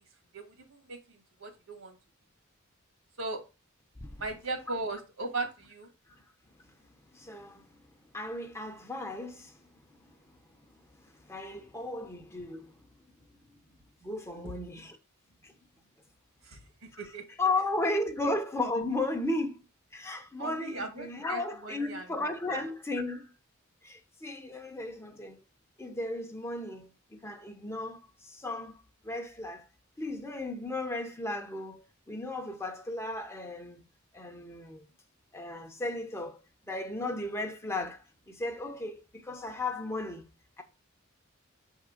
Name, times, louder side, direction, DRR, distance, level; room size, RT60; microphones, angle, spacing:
voice 1, 0.3-1.0 1.4-1.9 3.2-3.4 4.2-5.9 16.5-16.6 17.0-17.2 20.4-22.6, right 3 dB, 70° right, 1.9 m, -38 dB
voice 2, 7.1-7.6 8.1-9.6 9.9-10.1 11.0-12.7 14.0-15.0 15.4-15.5 16.9-19.6 19.9-23.3 23.8-25.4 25.8-28.8 29.0-29.7 30.0-33.8 34.1-34.8 35.3-36.4 36.7-40.2 40.6-40.7, left 2 dB, 15° left, 0.8 m, -35 dB
6.5 x 3.7 x 5.0 m
head